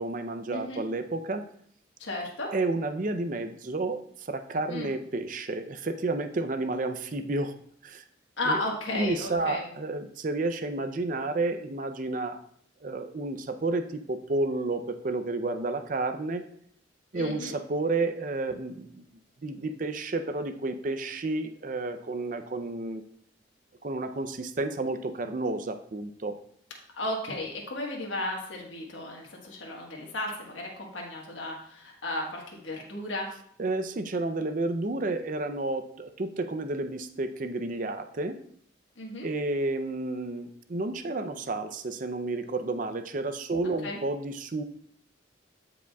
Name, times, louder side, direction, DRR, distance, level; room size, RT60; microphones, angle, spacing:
voice 1, 0.0-1.4 2.5-7.5 7.8-8.0 8.5-8.6 8.9-12.4 12.8-16.4 17.1-19.0 19.4-23.0 23.8-26.3 33.6-38.4 39.2-44.6, right 2 dB, 45° right, 8 dB, 0.5 m, -31 dB
voice 2, 0.5-0.8 2.0-2.5 4.7-4.9 8.4-9.6 17.1-17.5 27.0-33.3 39.0-39.3 43.8-44.0, left 1 dB, 85° left, -1 dB, 1.4 m, -34 dB
15.0 x 5.0 x 2.3 m, 0.64 s
head